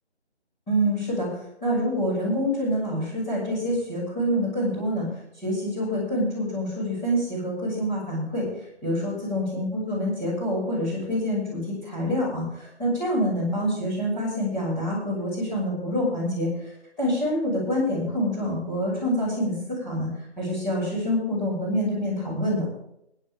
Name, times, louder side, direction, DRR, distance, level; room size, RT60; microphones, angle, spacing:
voice 1, 0.7-1.3 1.6-5.0 5.4-8.5 8.8-16.5 17.0-20.1 20.4-22.6, equal, 10° left, -8 dB, 6.8 m, -26 dB
20.5 x 11.0 x 3.7 m, 0.77 s
figure-of-eight pair, 160°, 34 cm